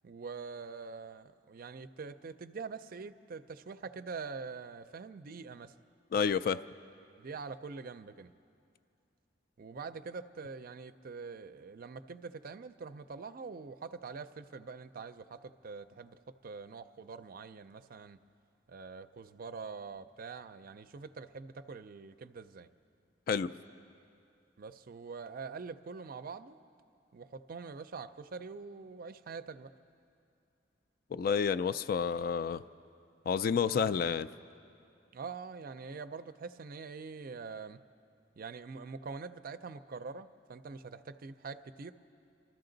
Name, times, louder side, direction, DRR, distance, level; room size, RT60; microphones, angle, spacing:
voice 1, 0.0-5.7 7.2-8.3 9.6-18.2 18.7-22.7 24.6-26.6 27.1-29.7 35.1-37.8 38.4-41.9, right 4 dB, 50° right, 12 dB, 0.4 m, -44 dB
voice 2, 6.1-6.6 23.3-23.5 31.1-32.6 33.3-34.3, left 6 dB, 50° left, 14 dB, 0.3 m, -29 dB
27.5 x 13.0 x 3.9 m, 2.5 s
head